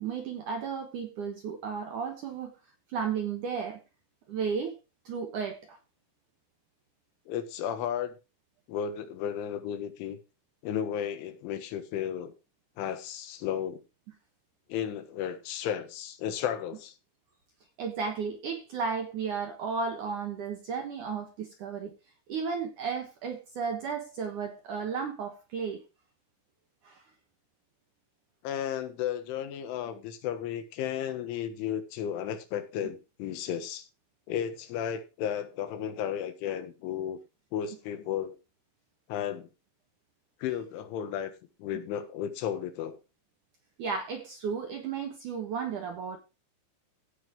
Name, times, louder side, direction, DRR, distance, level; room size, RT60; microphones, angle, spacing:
voice 1, 0.0-2.5 2.9-3.8 4.3-4.7 5.1-5.8 17.8-21.9 22.3-25.8 26.8-27.0 43.8-46.2, right 6 dB, 70° right, 2.0 m, -34 dB
voice 2, 7.3-8.1 8.7-10.2 10.6-12.3 12.8-13.8 14.7-16.9 28.4-33.9 34.3-37.2 37.5-38.4 39.1-39.5 40.4-41.3 41.6-43.0, left 9 dB, 85° left, 3.9 m, -33 dB
16.0 x 5.3 x 4.6 m
omnidirectional pair, 5.3 m